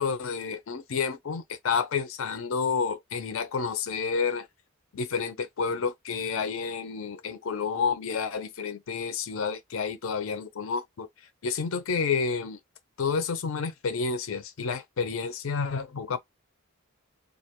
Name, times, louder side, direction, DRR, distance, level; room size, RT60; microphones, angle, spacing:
voice 1, 0.0-4.5 4.9-11.1 11.4-12.6 13.0-16.2, left 5 dB, 65° left, 0.5 m, -30 dB
2.4 x 2.1 x 2.9 m
head